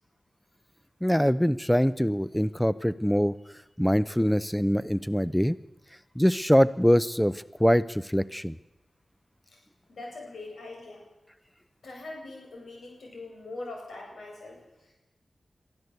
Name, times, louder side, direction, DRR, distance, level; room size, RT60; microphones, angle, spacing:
voice 1, 1.0-3.3 3.8-5.6 6.2-8.6, equal, 5° left, 17 dB, 0.6 m, -23 dB
voice 2, 9.9-11.0 11.8-14.9, left 2 dB, 85° left, 0 dB, 7.9 m, -42 dB
22.5 x 14.5 x 8.1 m, 1.0 s
cardioid pair, 50°, 0 cm